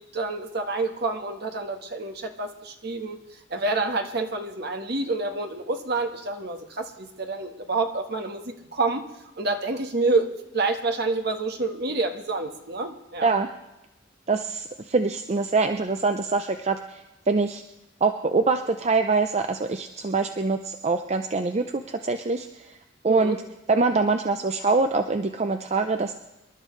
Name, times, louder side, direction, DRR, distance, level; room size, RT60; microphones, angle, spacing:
voice 1, 0.0-9.1 9.4-13.3 23.0-23.4, right 3 dB, 55° right, 4 dB, 1.4 m, -28 dB
voice 2, 14.3-17.6 18.0-22.7 23.0-23.4 23.7-26.1, right 3 dB, 35° right, 7 dB, 0.5 m, -24 dB
25.5 x 12.0 x 3.2 m, 0.94 s
head